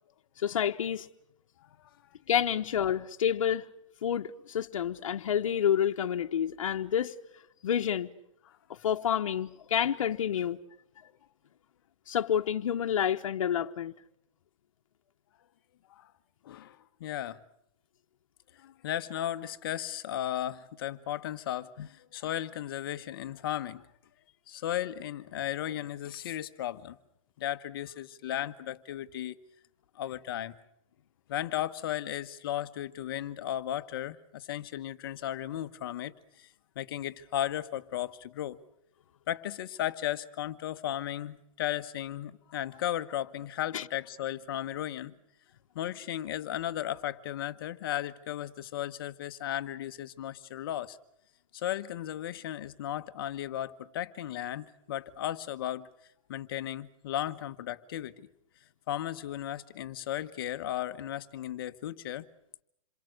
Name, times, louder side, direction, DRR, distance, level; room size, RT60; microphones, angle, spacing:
voice 1, 0.4-1.1 2.3-3.7 4.0-7.1 7.6-8.1 8.8-10.6 12.1-13.9 43.7-43.8, left 9 dB, 70° left, 1.0 m, -29 dB
voice 2, 16.4-17.4 18.6-23.8 24.5-27.0 27.4-29.4 29.9-30.5 31.3-36.5 36.7-38.6 39.3-45.1 45.7-51.0 51.5-55.9 56.3-58.3 58.9-62.3, left 12 dB, 45° left, 1.1 m, -35 dB
27.5 x 23.0 x 6.5 m
hypercardioid pair, 170°, 17 cm